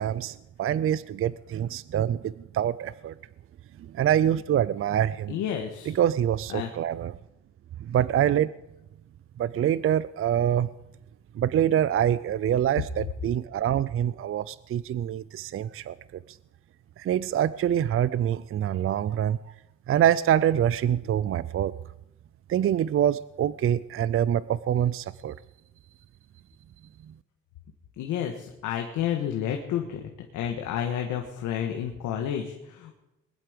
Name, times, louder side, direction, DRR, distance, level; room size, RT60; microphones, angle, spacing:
voice 1, 0.0-3.1 3.8-5.4 5.9-7.1 7.8-8.5 9.4-10.7 11.3-15.9 16.3-16.4 17.0-19.4 19.9-21.7 22.5-25.3, right 10 dB, 45° right, 18 dB, 0.5 m, -25 dB
voice 2, 5.3-6.0 6.5-6.7 28.0-32.9, left 9 dB, 90° left, 2 dB, 1.6 m, -30 dB
21.0 x 11.0 x 5.1 m, 0.93 s
cardioid pair, 90°, 30 cm